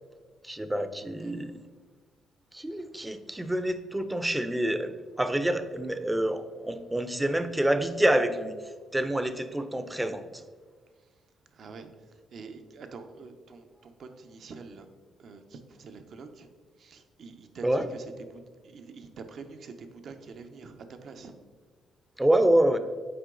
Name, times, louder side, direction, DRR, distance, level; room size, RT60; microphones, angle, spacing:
voice 1, 0.4-1.6 2.5-8.5 8.9-10.4 17.6-17.9 22.2-22.8, right 1 dB, 10° right, 10 dB, 0.5 m, -27 dB
voice 2, 11.5-14.9 15.2-16.5 16.8-21.3, right 4 dB, 60° right, 7 dB, 0.7 m, -46 dB
7.8 x 4.6 x 3.8 m, 1.5 s
cardioid pair, 90°, 0 cm